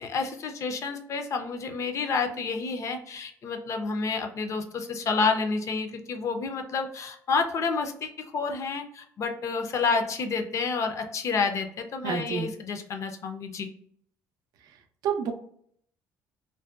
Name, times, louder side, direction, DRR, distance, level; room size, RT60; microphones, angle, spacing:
voice 1, 0.0-13.7, left 4 dB, 50° left, 5 dB, 0.5 m, -29 dB
voice 2, 12.0-12.5 15.0-15.3, right 7 dB, 70° right, 6 dB, 0.4 m, -28 dB
2.6 x 2.1 x 2.3 m, 0.64 s
supercardioid pair, 75°, 7 cm